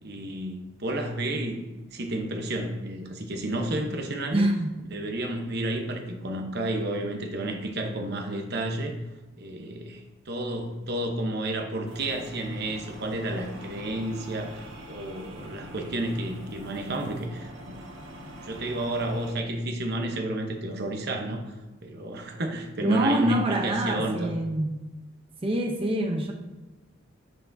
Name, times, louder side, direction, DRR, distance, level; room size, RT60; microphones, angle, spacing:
voice 1, 0.0-4.5 4.9-8.9 9.4-17.8 18.4-21.4 21.8-24.3, right 1 dB, 55° right, 3 dB, 1.0 m, -31 dB
voice 2, 4.3-4.7 22.8-24.7 25.4-26.3, right 1 dB, 30° right, 2 dB, 0.7 m, -25 dB
machine ambience, 11.8-19.3, equal, 80° right, 1.2 m, -44 dB
9.3 x 5.9 x 2.7 m, 1.1 s
head